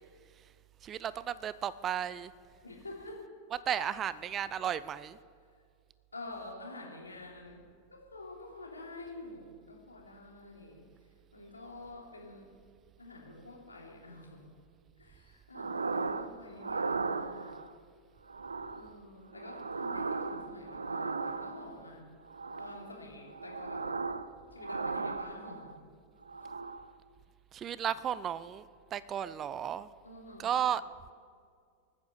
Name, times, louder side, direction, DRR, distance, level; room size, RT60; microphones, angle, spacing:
voice 1, 0.8-2.3 3.7-5.2 27.5-28.6 28.9-29.9 30.4-30.8, right 9 dB, 30° right, 17 dB, 0.5 m, -34 dB
voice 2, 2.6-3.3 6.1-10.8 11.3-12.5 13.0-14.4 15.0-17.6 18.7-22.1 22.6-24.0 24.5-25.7 30.0-30.7, left 2 dB, 80° left, -1 dB, 3.1 m, -48 dB
sound 1, 15.5-16.3 16.6-17.7 18.3-18.9 19.3-21.8 22.3-22.9 23.3-24.3 24.6-25.8 26.2-26.9, right 4 dB, 75° right, 0.6 m, -36 dB
20.5 x 9.5 x 6.9 m, 2.2 s
figure-of-eight pair, 90°, 0 cm